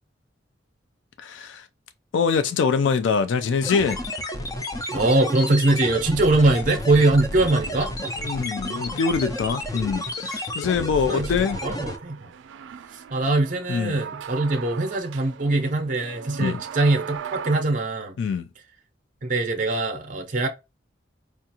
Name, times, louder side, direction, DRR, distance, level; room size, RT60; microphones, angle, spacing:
voice 1, 1.2-1.7 2.1-4.0 8.2-11.6 13.7-14.0 16.4-16.6 18.2-18.5, left 5 dB, 80° left, 0.3 m, -24 dB
sound 1, 3.6-12.0, left 1 dB, 20° left, 0.4 m, -31 dB
voice 2, 4.9-8.1 11.1-11.3 11.6-12.3 12.9-18.1 19.2-20.5, right 2 dB, 45° right, 0.6 m, -22 dB
sound 2, 11.1-17.6, right 7 dB, 90° right, 0.3 m, -39 dB
4.4 x 2.4 x 2.8 m
head